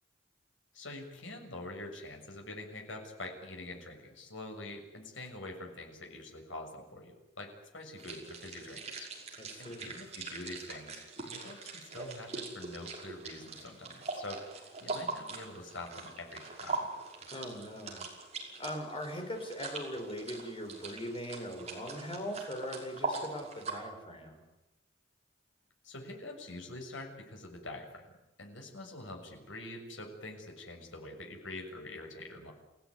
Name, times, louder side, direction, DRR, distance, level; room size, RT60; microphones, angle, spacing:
voice 1, 0.7-9.1 9.6-16.9 25.8-28.1 28.4-32.5, left 2 dB, 75° left, 2 dB, 6.8 m, -45 dB
sound 1, 8.0-23.8, right 3 dB, 35° right, 5.6 m, -42 dB
voice 2, 9.4-10.0 17.3-18.0 18.6-24.4, equal, 30° left, 4 dB, 5.6 m, -40 dB
28.5 x 17.0 x 9.8 m, 0.97 s
head